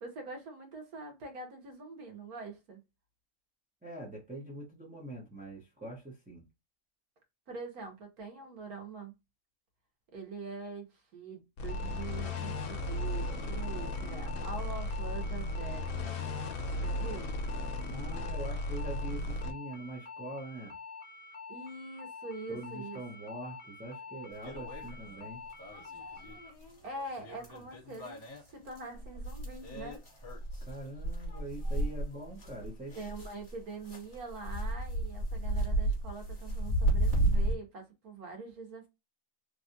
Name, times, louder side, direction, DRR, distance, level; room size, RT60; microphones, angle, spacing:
voice 1, 0.0-2.8 7.5-9.1 10.1-15.9 16.8-17.4 21.5-23.0 26.8-30.0 33.0-38.9, right 3 dB, 90° right, 1.6 m, -44 dB
voice 2, 3.8-6.5 17.8-20.7 22.5-25.4 30.6-33.0, right 1 dB, 10° right, 0.7 m, -43 dB
sound 1, 11.6-19.5, left 1 dB, 85° left, 1.1 m, -35 dB
sound 2, 11.7-26.5, left 4 dB, 65° left, 1.0 m, -47 dB
sound 3, 24.4-25.2 25.6-33.5 33.8-37.6, right 1 dB, 35° left, 1.4 m, -33 dB
3.4 x 2.3 x 2.7 m
omnidirectional pair, 1.5 m